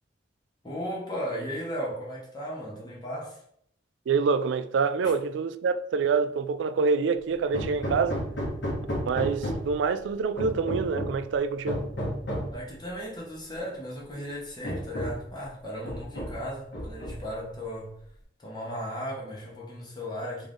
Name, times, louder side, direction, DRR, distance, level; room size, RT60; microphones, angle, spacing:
voice 1, 0.6-3.4 5.0-5.2 12.5-17.9 18.4-20.5, equal, 20° left, 1.0 m, -36 dB
voice 2, 4.1-8.2 9.0-11.9, right 5 dB, 75° right, 0.3 m, -26 dB
Hammer, 7.5-9.8 10.4-11.2 11.7-12.6 13.6-13.7 14.1-14.2 14.6-15.3 15.8-16.5 16.7-17.4, equal, 75° left, 1.4 m, -32 dB
3.7 x 3.5 x 3.6 m
head